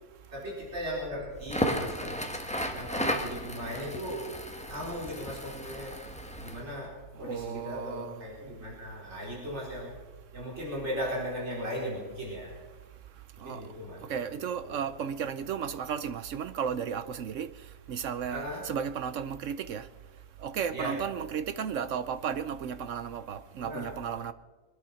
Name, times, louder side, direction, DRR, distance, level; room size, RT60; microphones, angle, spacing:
voice 1, 0.3-2.2 2.7-4.3 4.7-6.0 6.3-6.9 7.2-9.9 10.3-12.5 13.4-14.8 18.3-18.7 20.7-21.0 23.6-23.9, equal, 40° right, 4.8 m, -37 dB
Crackle, 1.4-6.6, equal, 5° left, 1.2 m, -34 dB
voice 2, 7.2-8.3 12.8-24.3, right 7 dB, 60° right, 0.8 m, -35 dB
23.0 x 10.5 x 5.7 m
omnidirectional pair, 1.8 m